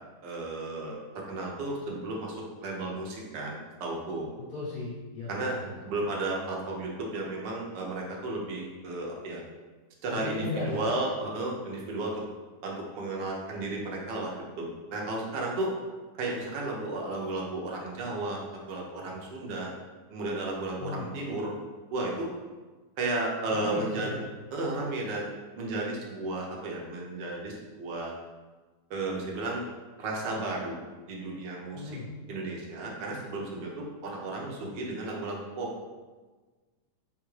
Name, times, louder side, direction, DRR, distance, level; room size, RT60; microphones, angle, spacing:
voice 1, 0.2-4.3 5.3-5.6 5.9-9.4 10.0-12.2 12.6-14.3 14.6-15.7 16.1-19.7 20.1-21.5 21.9-22.3 23.0-24.1 24.5-28.1 28.9-29.6 30.0-30.8 31.1-31.9 32.3-35.7, right 2 dB, 90° right, -1 dB, 1.5 m, -33 dB
voice 2, 4.4-5.9 10.1-10.8 20.8-21.1 23.5-24.2 31.7-32.1, left 3 dB, 65° left, -10 dB, 1.6 m, -36 dB
3.9 x 3.5 x 3.1 m, 1.3 s
omnidirectional pair, 1.8 m